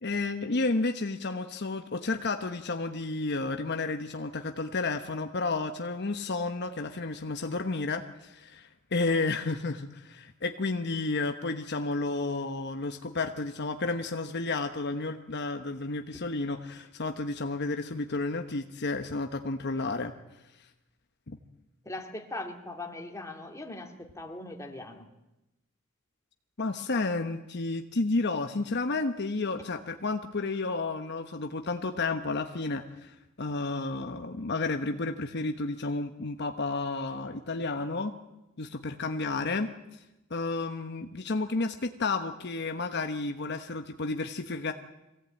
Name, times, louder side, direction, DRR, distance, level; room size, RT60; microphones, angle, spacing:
voice 1, 0.0-20.1 21.3-21.4 26.6-38.2 38.6-40.0 40.3-44.7, left 3 dB, 55° left, 6 dB, 1.1 m, -31 dB
voice 2, 21.8-25.1, left 2 dB, 15° left, 3 dB, 2.3 m, -40 dB
24.0 x 17.0 x 8.9 m, 0.96 s
head